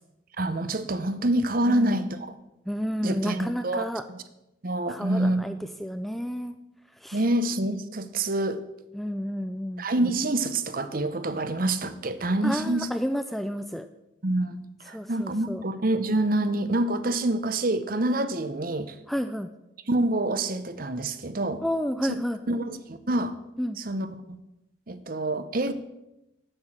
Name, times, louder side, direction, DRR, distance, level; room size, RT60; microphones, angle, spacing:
voice 1, 0.4-2.3 3.0-4.2 4.6-5.5 7.1-8.6 9.8-12.9 14.2-19.0 19.9-21.6 22.0-22.2 22.5-23.3 23.8-24.1 24.9-25.7, right 1 dB, 45° right, 12 dB, 0.8 m, -27 dB
voice 2, 1.7-2.0 2.7-4.1 4.9-6.5 7.0-7.2 8.9-9.9 12.4-13.9 14.9-15.6 19.1-19.5 21.6-22.6 23.6-23.8, equal, ahead, 9 dB, 0.4 m, -31 dB
8.8 x 8.4 x 7.4 m, 0.92 s
head